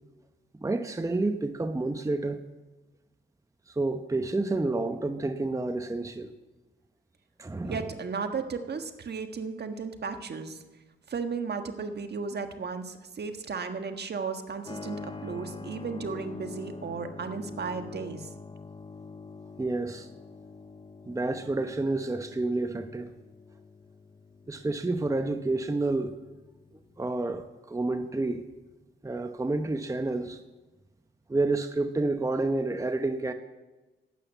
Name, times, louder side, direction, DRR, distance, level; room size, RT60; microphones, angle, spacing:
voice 1, 0.6-2.4 3.7-6.3 7.4-7.9 19.6-20.1 21.1-23.1 24.5-26.2 27.0-28.4 29.0-30.4 31.3-33.3, right 2 dB, 15° right, 7 dB, 0.8 m, -29 dB
voice 2, 7.6-10.6 11.1-18.3, right 5 dB, 55° right, 6 dB, 1.5 m, -35 dB
Keyboard (musical), 14.6-27.1, left 4 dB, 25° left, 0.7 m, -45 dB
12.0 x 8.8 x 9.2 m, 1.2 s
cardioid pair, 75°, 21 cm